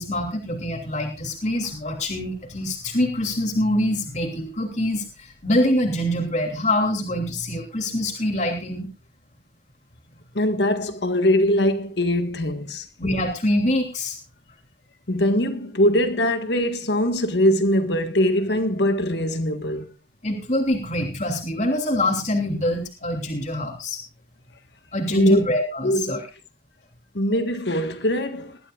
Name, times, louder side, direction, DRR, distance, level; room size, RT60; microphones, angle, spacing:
voice 1, 0.0-8.9 13.0-14.2 20.2-24.0 24.9-26.2, left 1 dB, 40° left, 3.0 m, -25 dB
voice 2, 10.4-12.9 15.1-19.9 25.1-25.4 25.8-26.2 27.1-28.6, left 1 dB, 65° left, 1.7 m, -22 dB
20.5 x 13.0 x 2.5 m
head